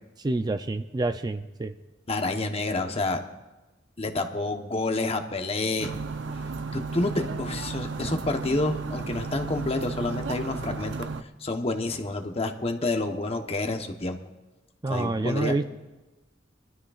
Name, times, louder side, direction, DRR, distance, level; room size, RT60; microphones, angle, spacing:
voice 1, 0.2-1.7 14.8-15.7, right 2 dB, 20° right, 8 dB, 0.4 m, -27 dB
voice 2, 2.1-3.2 4.0-5.9 6.7-11.1 11.4-14.2 14.9-15.5, left 2 dB, 30° left, 5 dB, 1.0 m, -29 dB
sound 1, 5.8-11.2, right 4 dB, 70° right, 0.6 m, -34 dB
23.5 x 13.0 x 2.4 m, 1.1 s
head